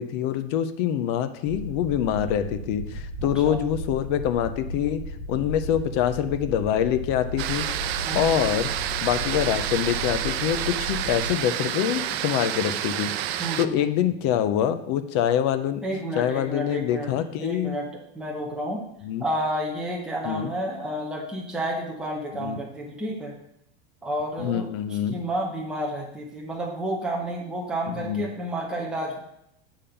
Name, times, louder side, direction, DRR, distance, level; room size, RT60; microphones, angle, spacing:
voice 1, 0.0-5.0 5.3-7.6 8.1-8.7 9.0-15.8 16.2-17.8 19.0-19.2 20.2-20.5 22.4-22.6 24.4-25.2 27.9-28.2, left 10 dB, 30° left, 10 dB, 0.3 m, -25 dB
sound 1, 1.4-11.3, equal, 45° right, 2.0 m, -35 dB
voice 2, 3.2-3.7 8.1-8.6 13.4-13.9 15.8-17.1 17.4-17.9 18.1-18.8 19.2-23.3 24.0-24.7 25.1-29.2, right 1 dB, 5° right, -2 dB, 0.7 m, -30 dB
sound 2, 7.4-13.7, right 11 dB, 90° right, 0.6 m, -29 dB
8.5 x 3.7 x 6.7 m, 0.77 s
supercardioid pair, 180°, 30 cm